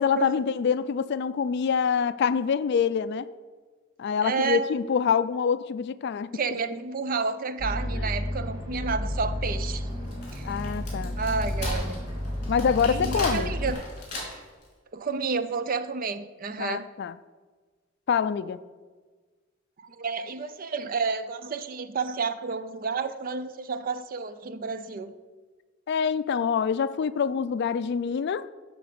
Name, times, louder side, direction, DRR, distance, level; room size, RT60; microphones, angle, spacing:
voice 1, 0.0-3.3 4.0-6.3 7.9-8.1 10.4-11.2 12.5-13.5 16.6-17.2 18.1-18.6 25.9-28.5, left 6 dB, 60° left, 0.3 m, -26 dB
voice 2, 4.2-4.7 6.3-9.9 10.3-10.5 11.2-12.0 12.9-13.8 14.9-16.9 19.8-25.1, right 4 dB, 45° right, 0.5 m, -30 dB
sound 1, 7.6-13.7, left 1 dB, 20° right, 2.4 m, -31 dB
Wood, 9.9-14.6, left 1 dB, 40° left, 3.3 m, -37 dB
11.5 x 4.0 x 6.8 m
head